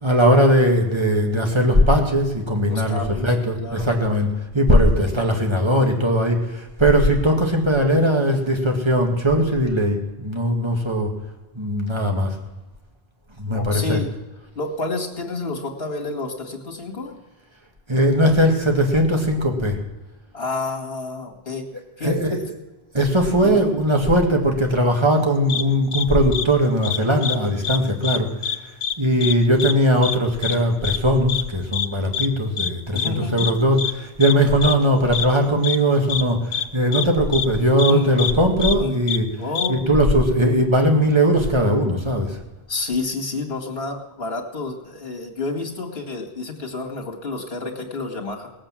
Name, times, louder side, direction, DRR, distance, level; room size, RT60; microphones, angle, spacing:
voice 1, 0.0-4.3 4.5-11.1 11.6-12.3 13.4-14.0 17.9-19.8 22.0-22.3 22.9-28.3 29.0-39.3 39.7-42.4, equal, 25° right, 2 dB, 1.9 m, -19 dB
voice 2, 2.7-3.3 3.6-3.9 13.5-14.1 14.6-17.2 20.3-21.7 22.0-22.1 23.4-23.6 32.9-33.5 37.9-38.4 38.8-39.0 39.4-39.9 42.7-48.5, left 3 dB, 65° left, 2 dB, 2.3 m, -29 dB
sound 1, 25.5-25.6 25.9-26.0 26.3-26.4 26.8-27.4 27.6-27.8 28.0-28.6 28.8-28.9 29.2-29.3 29.6-29.7 30.0-30.2 30.4-30.6 30.8-31.0 31.3-31.4 31.7-31.9 32.1-32.3 32.6-32.7 33.0-33.1 33.4-33.5 33.8-33.9 34.2-34.3 34.6-34.7 35.1-35.3 35.6-35.8 36.1-36.2 36.5-36.6 36.9-37.1 37.3-37.5 37.8-37.9 38.2-38.3 38.6-38.7 39.1-39.2 39.5-39.7, left 7 dB, 85° left, 1.0 m, -25 dB
18.5 x 7.8 x 7.5 m, 1.1 s
omnidirectional pair, 1.1 m